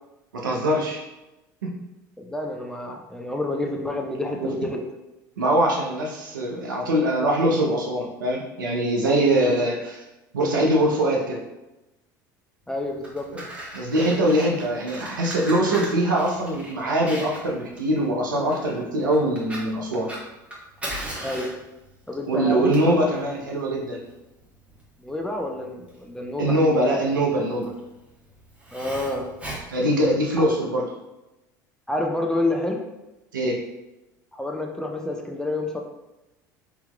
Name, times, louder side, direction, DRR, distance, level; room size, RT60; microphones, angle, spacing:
voice 1, 0.3-1.0 1.6-1.8 4.4-4.5 5.4-10.0 10.3-11.4 13.3-13.4 13.7-20.1 22.3-24.0 26.4-27.7 29.7-30.9 33.3-33.6, right 1 dB, 85° right, -1 dB, 0.7 m, -23 dB
voice 2, 2.2-4.8 9.0-9.4 12.7-13.3 21.2-21.5 22.1-23.0 25.0-26.6 28.7-29.2 30.4-30.5 31.9-32.8 34.3-35.8, left 2 dB, 5° left, 2 dB, 0.5 m, -28 dB
Fire, 12.8-30.6, right 1 dB, 10° right, 1.1 m, -39 dB
3.7 x 2.9 x 2.2 m, 0.98 s
hypercardioid pair, 75°, 10 cm